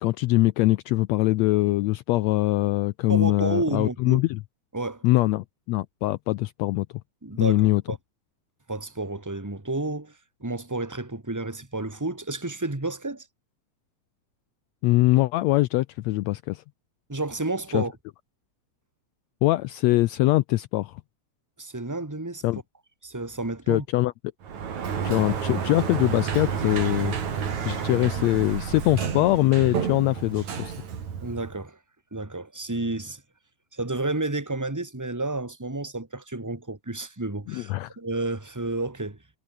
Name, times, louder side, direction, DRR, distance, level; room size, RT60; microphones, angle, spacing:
voice 1, 0.0-4.4 5.0-6.9 7.4-7.8 14.8-16.6 17.7-17.8 19.4-21.0 22.4-22.6 23.7-24.1 25.0-27.1 27.6-30.7 37.5-38.0, left 18 dB, 80° left, 1.6 m, -23 dB
voice 2, 3.1-4.2 4.7-5.0 7.2-8.0 8.7-10.1 10.4-13.2 17.1-17.9 21.6-22.4 23.0-23.8 31.2-31.8 32.1-33.2 33.7-39.2, right 2 dB, 10° right, 0.9 m, -31 dB
Sliding door, 24.4-31.6, right 7 dB, 65° right, 4.1 m, -30 dB
omnidirectional pair, 3.6 m